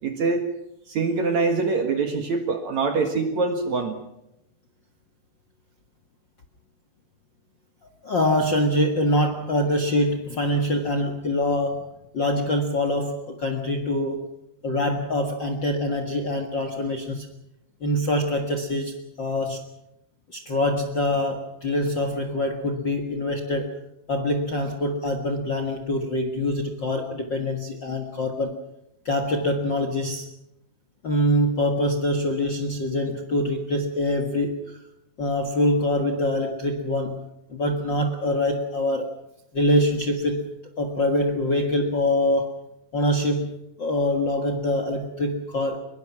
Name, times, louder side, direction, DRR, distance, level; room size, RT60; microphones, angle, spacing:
voice 1, 0.0-0.4 0.9-4.0, right 4 dB, 55° right, 6 dB, 2.4 m, -24 dB
voice 2, 8.0-14.3 14.6-17.3 17.8-19.6 20.3-23.7 24.1-28.5 29.0-30.2 31.0-34.8 35.2-37.2 37.5-39.1 39.5-40.4 40.8-42.6 42.9-43.5 43.8-45.8, left 1 dB, 55° left, 6 dB, 1.2 m, -24 dB
23.5 x 22.5 x 6.0 m, 0.84 s
omnidirectional pair, 4.8 m